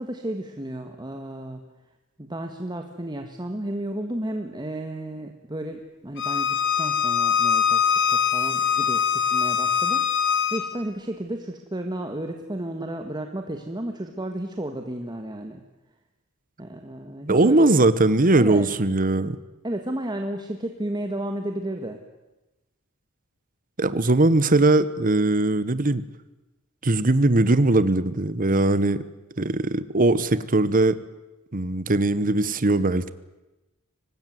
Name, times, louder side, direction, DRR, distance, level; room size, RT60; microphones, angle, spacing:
voice 1, 0.0-1.6 2.2-15.6 16.6-17.7 18.4-18.7 19.6-22.0, right 1 dB, 20° right, 5 dB, 1.6 m, -32 dB
Bowed string instrument, 6.2-10.6, left 7 dB, 60° left, 2.3 m, -22 dB
voice 2, 17.3-19.4 23.8-26.0 26.8-29.0 29.4-31.0 31.5-33.1, right 2 dB, 40° right, 14 dB, 1.2 m, -20 dB
24.0 x 20.0 x 9.4 m, 1.0 s
head